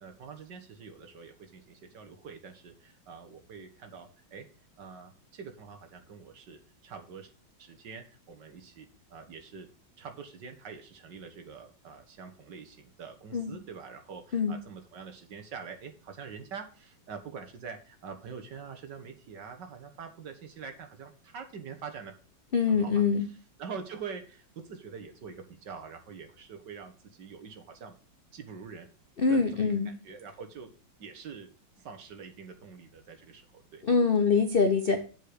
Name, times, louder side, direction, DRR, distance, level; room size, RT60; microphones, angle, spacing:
voice 1, 0.0-4.5 4.8-7.3 7.6-9.7 10.0-22.2 22.7-23.0 23.6-28.0 28.3-28.9 29.3-30.7 31.0-31.5 31.8-33.8, right 6 dB, 60° right, 5 dB, 1.8 m, -45 dB
voice 2, 22.5-23.3 29.2-29.9 33.8-35.0, left 5 dB, 75° left, 6 dB, 0.5 m, -24 dB
7.4 x 5.3 x 6.5 m, 0.38 s
omnidirectional pair, 2.2 m